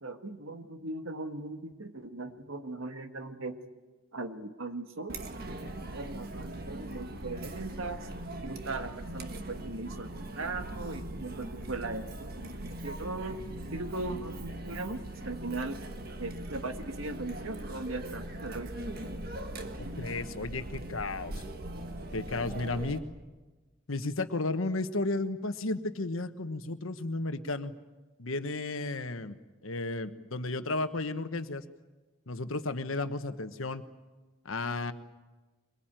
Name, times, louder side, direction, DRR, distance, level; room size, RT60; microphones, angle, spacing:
voice 1, 0.0-3.6 4.1-5.2 5.6-8.1 8.4-13.4 13.7-15.8 16.2-18.7, right 2 dB, 85° right, 7 dB, 1.8 m, -39 dB
Chatter, 5.1-23.0, right 1 dB, 50° right, 1.7 m, -40 dB
voice 2, 19.7-21.3 22.1-23.0 23.9-27.7 28.2-31.6 32.3-33.8 34.4-34.9, left 2 dB, 90° left, 9 dB, 1.3 m, -33 dB
23.0 x 22.0 x 9.1 m, 1.2 s
head